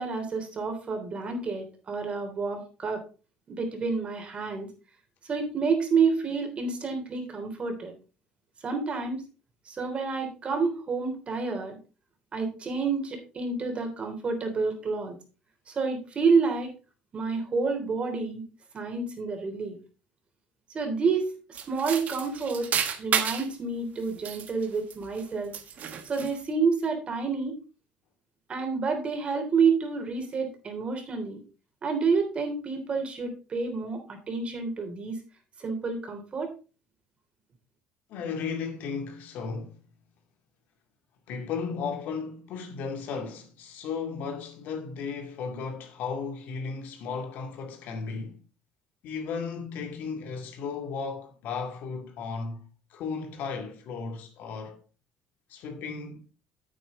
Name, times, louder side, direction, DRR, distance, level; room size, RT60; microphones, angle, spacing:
voice 1, 0.0-3.0 3.5-4.7 5.2-7.9 8.6-9.2 9.6-11.8 12.3-15.2 15.7-16.7 17.1-18.4 18.7-19.8 20.7-21.2 21.5-22.7 23.0-25.5 26.0-27.5 28.5-31.4 31.8-35.2 35.6-36.5, right 4 dB, 35° right, 3.4 m, -29 dB
sound 1, 21.5-23.5 24.1-25.2 25.5-26.4, right 8 dB, 55° right, 1.5 m, -31 dB
voice 2, 38.1-39.8 41.3-48.4 49.0-54.8 55.5-56.2, left 5 dB, 70° left, 2.3 m, -35 dB
9.1 x 8.5 x 3.7 m
supercardioid pair, 95°, 3 cm